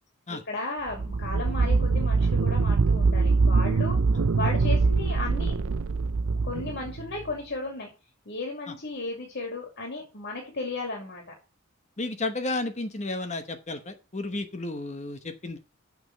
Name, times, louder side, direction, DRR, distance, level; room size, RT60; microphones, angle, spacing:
voice 1, 0.3-4.0 4.4-5.6 6.4-7.9 8.3-11.2, left 2 dB, 60° left, 1 dB, 2.6 m, -34 dB
sound 1, 0.9-7.3, right 4 dB, 90° right, 0.6 m, -23 dB
voice 2, 12.0-15.6, left 2 dB, 35° left, 8 dB, 1.0 m, -32 dB
7.2 x 6.1 x 7.6 m, 0.31 s
head